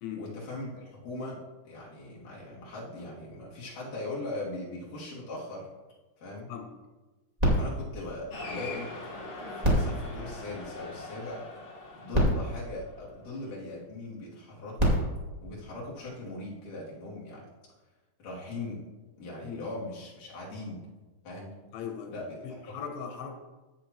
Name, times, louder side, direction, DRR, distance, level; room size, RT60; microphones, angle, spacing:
voice 1, 0.2-5.7 6.2-6.5 7.5-8.9 9.5-11.4 12.0-14.9 15.4-17.5 18.2-18.8 19.2-20.9 21.2-21.5 22.1-22.6, left 2 dB, 45° left, -6 dB, 3.8 m, -39 dB
sound 1, 7.4-9.0 9.6-11.2 11.8-11.9 12.1-13.7 14.5-16.3 17.1-17.2, equal, 30° right, 0.7 m, -30 dB
Cheering, 8.3-13.1, left 2 dB, 65° left, 1.3 m, -42 dB
voice 2, 21.7-22.2 22.4-23.3, left 7 dB, 85° left, 4 dB, 3.8 m, -39 dB
15.5 x 8.2 x 3.0 m, 1.2 s
omnidirectional pair, 5.5 m